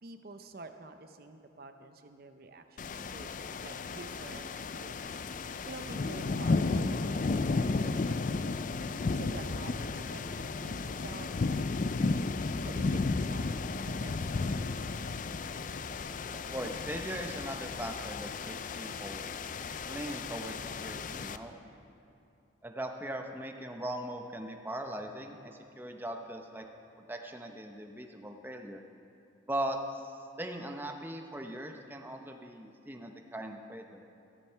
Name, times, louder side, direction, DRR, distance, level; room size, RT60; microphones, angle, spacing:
voice 1, 0.0-3.3 3.6-5.2 5.7-12.2 12.6-13.6 14.0-14.8, right 2 dB, 50° right, 7 dB, 0.7 m, -49 dB
sound 1, 2.8-21.4, left 3 dB, 40° left, 0.4 m, -34 dB
voice 2, 16.5-19.2 19.9-21.6 22.6-26.7 27.1-28.8 29.5-34.0, right 1 dB, 10° right, 4 dB, 0.7 m, -39 dB
14.0 x 13.0 x 5.6 m, 2.6 s
head